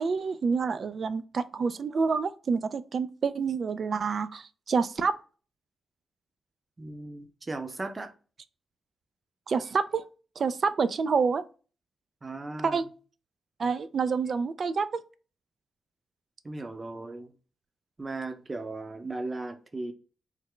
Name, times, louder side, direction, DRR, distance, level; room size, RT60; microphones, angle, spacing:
voice 1, 0.0-5.2 9.5-10.0 10.4-11.4 12.6-12.9 13.6-14.9, right 5 dB, 60° right, 0.3 m, -28 dB
voice 2, 6.8-8.1 12.2-12.8 16.4-17.3 18.0-19.9, right 2 dB, 35° right, 0.7 m, -37 dB
3.3 x 2.1 x 3.7 m
supercardioid pair, 50°, 0 cm